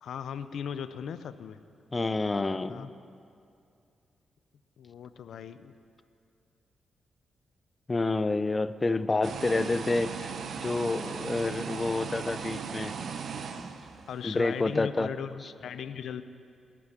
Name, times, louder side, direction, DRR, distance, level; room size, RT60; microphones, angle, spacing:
voice 1, 0.0-1.6 2.7-2.9 4.8-5.7 14.1-16.2, left 7 dB, 80° left, 12 dB, 0.6 m, -38 dB
voice 2, 1.9-2.9 7.9-12.9 14.2-15.1, left 3 dB, 25° left, 13 dB, 0.5 m, -28 dB
sound 1, 9.2-14.4, right 6 dB, 65° right, 0.7 m, -37 dB
17.0 x 6.2 x 9.6 m, 2.4 s
cardioid pair, 105°, 0 cm